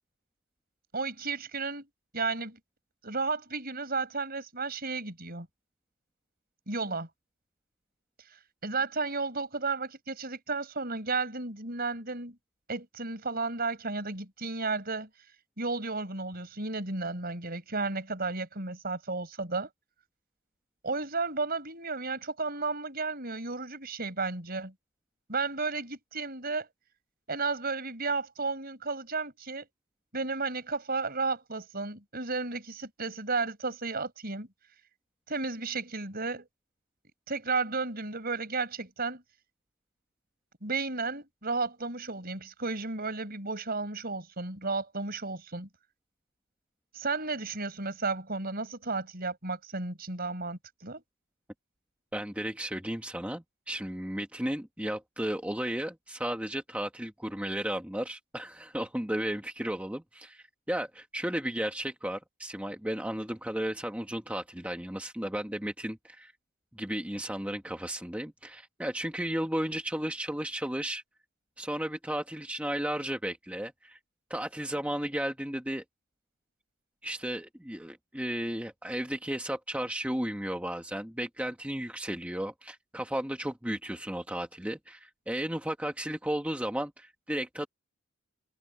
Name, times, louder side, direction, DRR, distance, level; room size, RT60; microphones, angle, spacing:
voice 1, 0.9-1.9 2.1-2.6 3.0-5.5 6.7-7.1 8.6-12.4 12.7-15.1 15.6-19.7 20.8-24.7 25.3-26.7 27.3-29.7 30.1-34.5 35.3-36.5 37.3-39.2 40.6-45.7 46.9-51.0, right 3 dB, 45° right, 5.8 m, -33 dB
voice 2, 52.1-66.3 66.7-71.0 71.6-74.0 74.3-75.8 77.0-87.7, right 1 dB, 5° right, 1.3 m, -34 dB
head